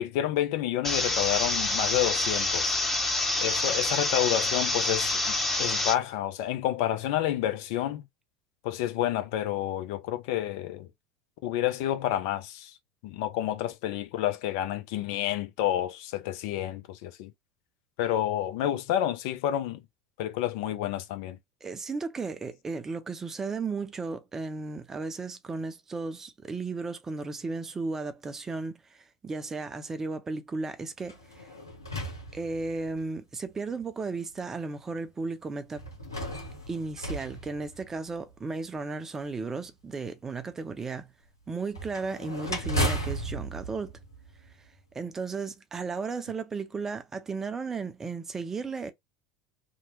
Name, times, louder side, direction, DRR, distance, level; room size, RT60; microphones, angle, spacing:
voice 1, 0.0-2.8 3.4-8.0 8.6-10.9 11.4-12.7 13.0-17.3 18.0-19.8 20.2-21.4, left 12 dB, 55° left, 0.5 m, -29 dB
sound 1, 0.8-5.9, left 2 dB, 10° left, 0.9 m, -27 dB
voice 2, 21.6-31.2 32.3-35.8 36.7-41.1 41.5-43.9 44.9-48.9, right 4 dB, 20° right, 0.5 m, -35 dB
sound 2, 31.0-33.0 33.8-33.9 35.7-38.3 41.7-44.8, right 1 dB, 85° left, 1.0 m, -35 dB
2.9 x 2.1 x 3.1 m
figure-of-eight pair, 75°, 2 cm